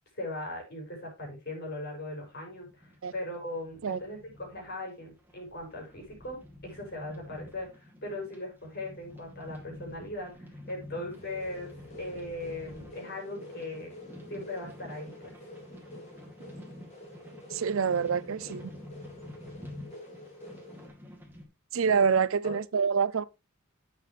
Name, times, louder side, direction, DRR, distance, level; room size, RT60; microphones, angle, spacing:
voice 1, 0.2-11.7 12.0-13.9 14.3-15.4 21.9-22.0 22.4-22.6, left 1 dB, 45° left, 6.3 m, -39 dB
sound 1, 2.2-21.4, left 1 dB, 10° right, 2.3 m, -49 dB
sound 2, 11.2-20.9, left 1 dB, 30° left, 2.9 m, -48 dB
voice 2, 17.5-18.7 21.7-23.2, right 6 dB, 65° right, 0.5 m, -26 dB
11.0 x 8.4 x 3.2 m
head